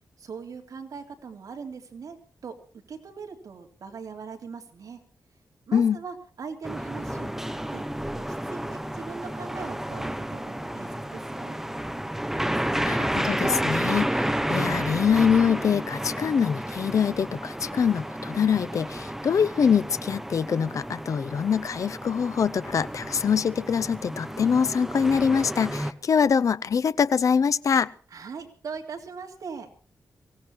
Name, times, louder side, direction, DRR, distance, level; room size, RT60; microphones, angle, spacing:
voice 1, 0.2-2.2 2.4-2.6 2.9-5.0 5.7-7.8 8.2-11.6 28.1-29.7, right 5 dB, 65° right, 3.3 m, -40 dB
sound 1, 6.6-25.9, right 1 dB, 5° right, 1.1 m, -31 dB
voice 2, 12.8-27.9, left 7 dB, 55° left, 0.6 m, -24 dB
24.0 x 17.0 x 3.0 m
wide cardioid pair, 135°, 6 cm